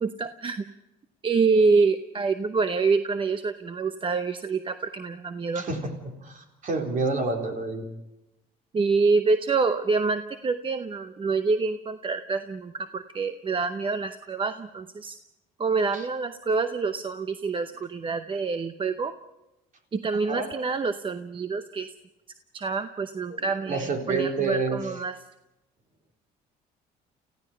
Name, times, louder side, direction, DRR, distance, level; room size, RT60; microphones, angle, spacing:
voice 1, 0.0-0.6 1.2-5.7 8.7-15.2 15.6-19.1 19.9-21.9 22.5-25.2, right 4 dB, 30° right, 10 dB, 0.8 m, -26 dB
voice 2, 6.2-7.9 20.3-20.5 23.7-24.8, right 3 dB, 50° right, 3 dB, 4.0 m, -28 dB
29.5 x 15.5 x 5.6 m, 0.94 s
cardioid pair, 110°, 17 cm